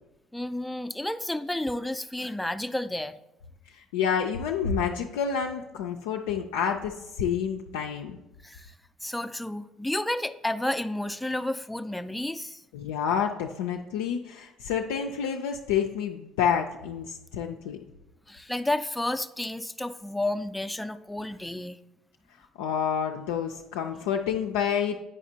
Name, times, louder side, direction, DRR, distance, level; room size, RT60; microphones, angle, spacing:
voice 1, 0.3-3.2 8.4-8.7 9.0-12.6 18.3-21.8, left 1 dB, 5° left, 11 dB, 0.4 m, -31 dB
voice 2, 3.7-8.2 12.7-17.8 22.6-25.0, left 7 dB, 80° left, 1 dB, 0.3 m, -29 dB
8.5 x 4.9 x 2.7 m, 0.96 s
hypercardioid pair, 60°, 0 cm